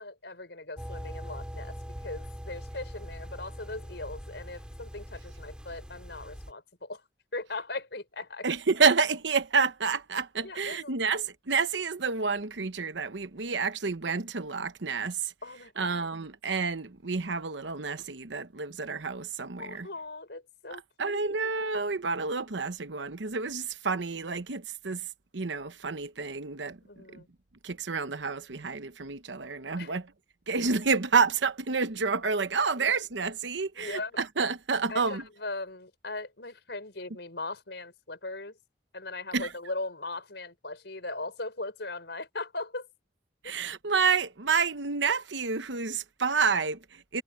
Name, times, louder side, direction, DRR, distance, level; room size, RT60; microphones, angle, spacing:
voice 1, 0.0-1.8 2.0-7.0 7.3-8.5 10.4-10.9 15.4-16.1 19.6-21.4 26.8-27.3 29.8-29.9 32.8-32.9 33.7-34.2 34.9-38.6 38.9-42.9, left 2 dB, 75° left, 4.7 m, -39 dB
sound 1, 0.8-6.5, equal, 5° right, 4.1 m, -42 dB
voice 2, 8.4-15.3 15.8-19.9 21.0-25.0 25.3-26.8 27.1-27.2 27.6-30.1 30.5-35.2 39.3-39.5 43.4-47.2, right 5 dB, 90° right, 1.0 m, -29 dB
head